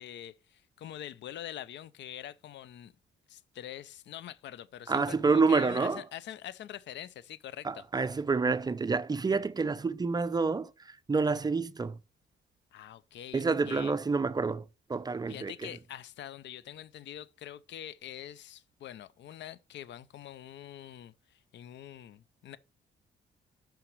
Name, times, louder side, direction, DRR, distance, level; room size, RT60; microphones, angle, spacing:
voice 1, 0.0-3.0 3.3-7.8 12.7-13.9 15.3-22.6, left 11 dB, 65° left, 0.5 m, -45 dB
voice 2, 4.9-6.0 7.6-12.0 13.3-14.6 14.9-15.7, right 4 dB, 20° right, 0.4 m, -28 dB
5.8 x 5.1 x 4.6 m
cardioid pair, 90°, 20 cm